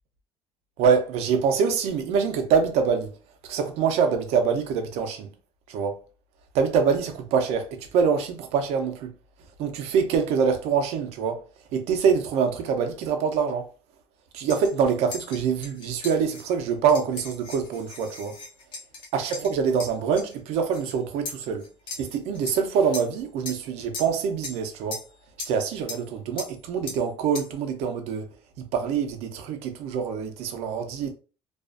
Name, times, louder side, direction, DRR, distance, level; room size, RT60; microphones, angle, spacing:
voice 1, 0.8-3.1 3.4-5.3 5.7-6.0 6.5-9.1 9.6-11.4 11.7-13.7 14.3-18.4 19.1-21.7 22.0-25.0 25.5-28.3 28.6-31.1, right 6 dB, 70° right, 0.5 m, -25 dB
sound 1, 14.5-20.9 21.3-22.6 22.9-23.2 23.5-23.7 23.9-24.6 24.9-25.1 25.4-25.6 25.9-26.1 26.4-26.6 26.9-27.1 27.4-27.5, left 2 dB, 50° left, 0.7 m, -38 dB
2.4 x 2.4 x 2.4 m
cardioid pair, 170°, 11 cm